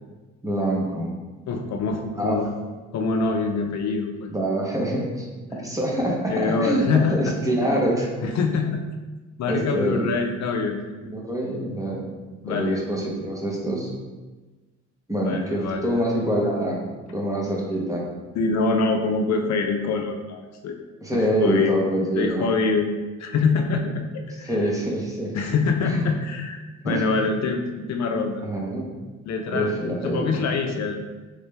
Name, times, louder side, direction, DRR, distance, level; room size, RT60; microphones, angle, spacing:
voice 1, 0.4-1.1 2.2-2.4 4.3-5.3 5.6-8.1 9.5-10.0 11.0-12.1 12.5-13.9 15.1-16.8 17.1-18.0 21.0-22.4 24.4-25.4 25.8-26.0 26.8-27.0 28.4-29.0 29.5-30.4, right 1 dB, 10° right, -3 dB, 0.9 m, -25 dB
voice 2, 1.5-2.5 2.9-4.3 6.3-7.9 8.2-8.8 9.4-10.8 12.4-12.8 15.2-16.0 18.3-20.8 21.1-21.7 22.2-22.9 23.2-24.6 25.3-28.4 29.3-29.7 30.0-31.1, left 4 dB, 65° left, 3 dB, 0.5 m, -25 dB
3.2 x 3.1 x 3.3 m, 1.2 s
cardioid pair, 90°, 30 cm